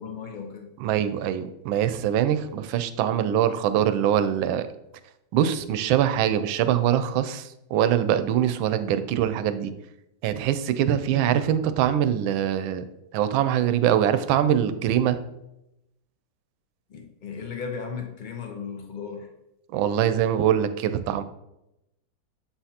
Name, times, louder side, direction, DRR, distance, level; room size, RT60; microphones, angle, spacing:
voice 1, 0.0-0.7 16.9-19.3, left 6 dB, 55° left, 3 dB, 0.5 m, -36 dB
voice 2, 0.8-4.7 5.3-9.7 10.2-12.8 13.1-15.2 19.7-21.2, right 10 dB, 85° right, 11 dB, 1.3 m, -23 dB
7.5 x 5.7 x 2.8 m, 0.86 s
omnidirectional pair, 2.1 m